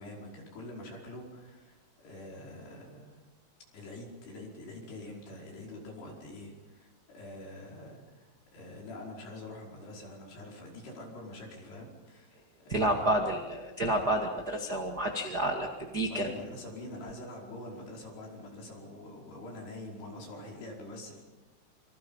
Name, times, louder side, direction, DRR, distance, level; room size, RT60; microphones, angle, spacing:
voice 1, 0.0-3.2 3.7-13.3 16.1-21.2, left 1 dB, 60° left, -1 dB, 7.0 m, -45 dB
voice 2, 12.7-16.3, right 1 dB, 40° right, 2 dB, 1.4 m, -30 dB
27.5 x 26.0 x 5.6 m, 1.1 s
omnidirectional pair, 5.3 m